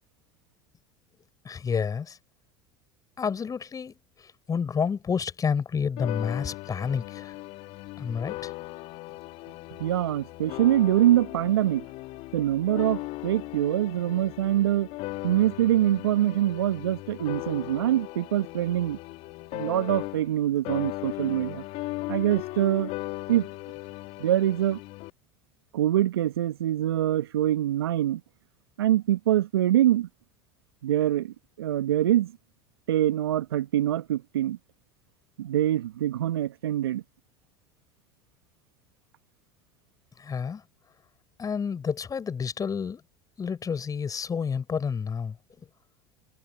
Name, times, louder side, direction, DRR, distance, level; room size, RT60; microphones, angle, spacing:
voice 1, 1.4-2.2 3.2-7.4 8.0-8.5 40.2-40.6 41.4-43.0 43.4-45.7, left 6 dB, 30° left, 6.9 m, -30 dB
sound 1, 6.0-20.4 20.7-25.1, left 20 dB, 55° left, 3.1 m, -38 dB
voice 2, 9.8-11.9 12.3-14.9 15.2-19.0 19.5-21.6 22.1-22.9 23.3-23.5 24.2-24.8 25.7-28.2 28.8-30.1 30.8-32.3 32.9-34.6 35.4-37.0, right 12 dB, 75° right, 1.8 m, -24 dB
hypercardioid pair, 75°, 13 cm